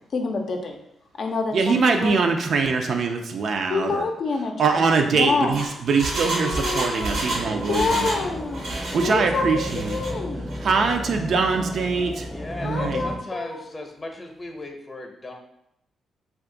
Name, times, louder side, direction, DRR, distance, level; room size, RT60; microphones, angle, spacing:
voice 1, 0.1-0.8 1.2-2.2 3.7-5.6 6.4-7.3 7.6-8.7 9.0-10.5 12.6-13.7, left 4 dB, 60° left, 3 dB, 0.4 m, -27 dB
voice 2, 1.5-4.0 4.6-8.3 8.7-10.0 10.6-12.3 12.6-13.0, right 4 dB, 65° right, 4 dB, 0.4 m, -23 dB
Engine, 5.3-8.3 8.5-9.1 9.6-10.1 10.5-10.6, right 2 dB, 80° right, 0.8 m, -29 dB
sound 1, 7.1-13.2, equal, 5° right, 0.5 m, -34 dB
voice 3, 12.3-15.3, left 2 dB, 30° left, 3 dB, 0.7 m, -37 dB
2.5 x 2.3 x 3.7 m, 0.79 s
supercardioid pair, 60°, 0 cm